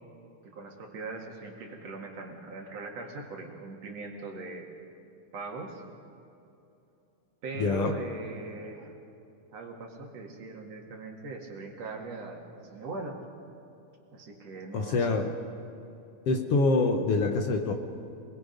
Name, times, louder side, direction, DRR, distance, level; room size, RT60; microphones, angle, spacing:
voice 1, 0.4-4.7 5.3-5.8 7.4-8.9 9.5-13.2 14.1-15.3 16.3-16.4, right 3 dB, 60° right, 0 dB, 3.1 m, -40 dB
voice 2, 7.6-7.9 14.7-15.3 16.3-17.7, left 3 dB, 60° left, 4 dB, 1.9 m, -25 dB
27.0 x 20.5 x 5.3 m, 2.9 s
omnidirectional pair, 3.4 m